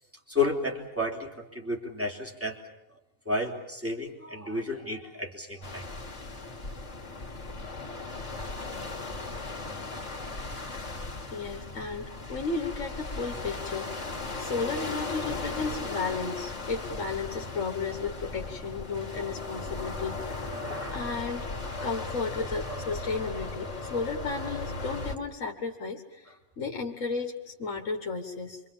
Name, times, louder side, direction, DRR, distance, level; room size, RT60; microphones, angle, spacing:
voice 1, 0.3-2.6 3.2-5.9 20.3-21.0 21.6-21.9, left 2 dB, 10° right, 1 dB, 3.3 m, -32 dB
sound 1, 5.6-25.2, left 3 dB, 70° left, 2.7 m, -37 dB
voice 2, 11.3-21.5 21.8-28.6, left 4 dB, 90° left, 2 dB, 2.0 m, -34 dB
27.5 x 25.0 x 7.2 m, 0.98 s
omnidirectional pair, 1.3 m